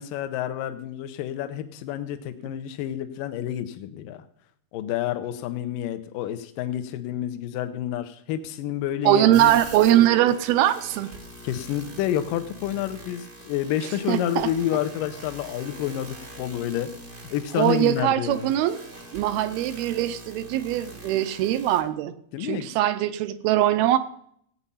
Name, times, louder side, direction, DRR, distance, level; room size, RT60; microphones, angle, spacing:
voice 1, 0.0-4.2 4.7-9.6 11.4-16.9 17.3-18.5 22.3-22.7, left 11 dB, 75° left, 8 dB, 2.2 m, -29 dB
voice 2, 9.0-11.1 14.1-14.5 17.5-18.8 19.1-22.1 22.4-24.0, right 13 dB, 80° right, 12 dB, 2.5 m, -21 dB
sound 1, 9.3-21.8, right 1 dB, 35° right, 0.7 m, -43 dB
16.0 x 8.7 x 5.6 m, 0.66 s
omnidirectional pair, 4.7 m